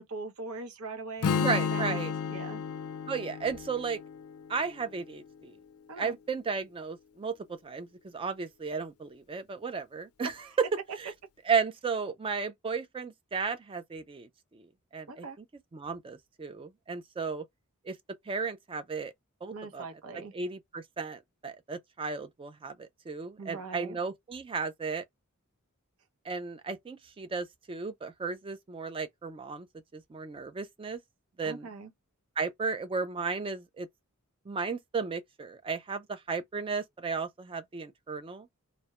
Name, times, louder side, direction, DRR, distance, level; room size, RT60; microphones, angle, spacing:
voice 1, 0.0-2.0 2.3-2.6 5.9-6.2 10.2-10.6 15.1-15.4 19.5-20.3 23.4-24.0 31.4-31.9, right 4 dB, 90° right, 0.6 m, -41 dB
Strum, 1.2-5.4, left 6 dB, 90° left, 0.4 m, -33 dB
voice 2, 1.4-2.1 3.1-4.0 4.5-5.5 6.0-10.3 10.6-10.7 11.0-11.1 11.5-15.3 15.7-17.4 17.8-18.0 18.3-19.1 19.4-19.8 20.3-25.0 26.3-29.7 29.9-31.0 31.4-31.7 32.4-33.9 34.5-38.5, right 5 dB, 25° right, 0.3 m, -34 dB
2.2 x 2.1 x 2.8 m
head